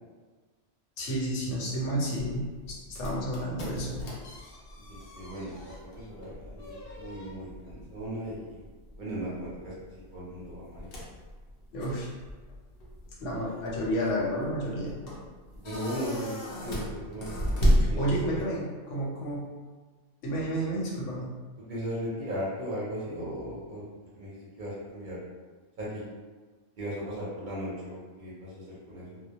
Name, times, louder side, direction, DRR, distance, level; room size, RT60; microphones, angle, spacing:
voice 1, 1.0-2.5 2.9-4.0 11.7-12.1 13.2-14.9 18.0-19.5 20.2-21.3, equal, 90° left, -4 dB, 1.0 m, -31 dB
sound 1, 2.2-18.6, equal, 60° left, 0.7 m, -34 dB
voice 2, 4.9-8.6 9.0-9.7 10.1-10.9 15.6-16.3 16.6-17.3 17.5-18.4 21.7-23.8 24.1-25.2 25.8-26.1 26.8-29.2, equal, 50° right, -7 dB, 0.6 m, -37 dB
2.1 x 2.1 x 2.7 m, 1.4 s
omnidirectional pair, 1.2 m